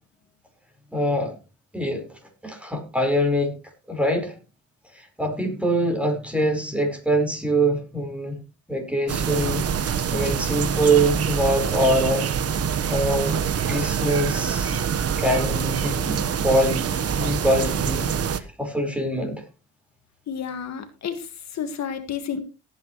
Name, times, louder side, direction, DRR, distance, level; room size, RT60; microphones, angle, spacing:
voice 1, 0.9-1.4 1.7-3.6 3.9-4.3 4.9-8.4 8.7-12.3 12.9-13.4 13.7-14.9 15.2-16.8 17.2-18.1 18.3-19.4, right 1 dB, 5° right, 4.8 m, -24 dB
sound 1, 9.1-18.4, right 7 dB, 50° right, 1.3 m, -25 dB
voice 2, 20.3-22.4, left 7 dB, 60° left, 1.8 m, -31 dB
18.0 x 9.4 x 3.2 m
cardioid pair, 90°, 30 cm